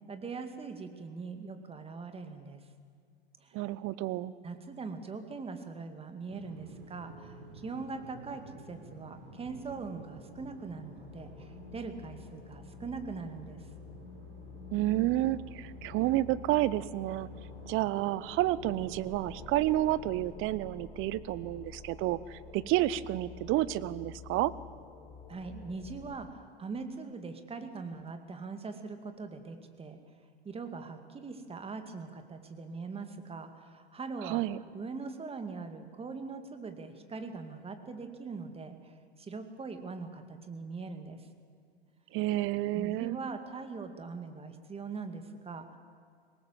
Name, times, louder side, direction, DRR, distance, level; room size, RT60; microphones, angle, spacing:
voice 1, 0.1-2.6 3.4-3.6 4.4-13.7 25.3-30.0 30.4-34.4 34.7-41.3 42.7-45.8, right 4 dB, 20° right, 7 dB, 2.2 m, -41 dB
voice 2, 3.5-4.3 14.7-17.3 17.7-24.5 34.2-34.6 42.1-43.2, right 15 dB, 40° right, 18 dB, 0.8 m, -30 dB
sound 1, 6.3-20.4, right 1 dB, 60° right, 4.1 m, -51 dB
sound 2, 9.4-26.3, left 7 dB, 20° left, 3.3 m, -50 dB
22.5 x 19.0 x 7.5 m, 2.1 s
hypercardioid pair, 95°, 32 cm